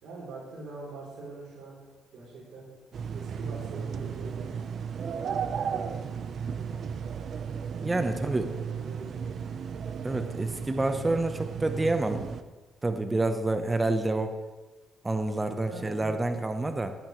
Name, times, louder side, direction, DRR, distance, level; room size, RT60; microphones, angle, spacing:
voice 1, 0.0-1.8 2.1-2.7 3.1-4.6 5.4-5.9 6.3-7.0 8.1-9.4 15.5-16.2, right 3 dB, 80° right, -6 dB, 3.5 m, -44 dB
sound 1, 2.9-12.4, right 7 dB, 60° right, 0.7 m, -35 dB
voice 2, 7.7-8.5 10.0-12.3 12.8-14.3 15.0-16.9, right 2 dB, 20° right, 7 dB, 0.9 m, -28 dB
17.5 x 8.9 x 3.2 m, 1.2 s
cardioid pair, 90°, 0 cm